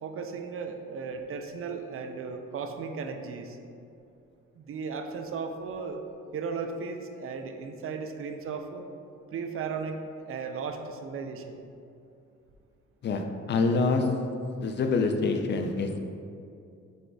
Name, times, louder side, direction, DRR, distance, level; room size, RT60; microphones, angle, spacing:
voice 1, 0.0-3.6 4.6-6.0 6.3-8.9 9.3-11.6, right 5 dB, 45° right, 6 dB, 0.4 m, -36 dB
voice 2, 13.0-14.1 14.6-16.0, left 3 dB, 35° left, 5 dB, 0.4 m, -26 dB
4.8 x 4.0 x 2.3 m, 2.6 s
cardioid pair, 90°, 30 cm